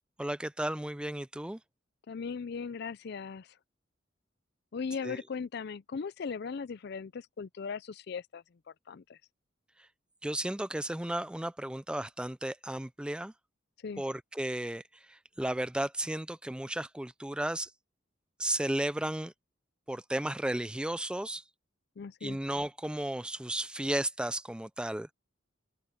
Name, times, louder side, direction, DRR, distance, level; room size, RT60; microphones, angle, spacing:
voice 1, 0.2-1.6 5.0-5.2 10.2-13.3 14.0-14.8 15.1-17.7 18.4-19.3 19.9-21.4 22.2-25.1, right 1 dB, 5° right, 0.4 m, -34 dB
voice 2, 2.1-3.5 4.7-8.4 8.9-9.2 13.8-14.0 22.0-22.4, left 5 dB, 55° left, 0.4 m, -38 dB
open air
head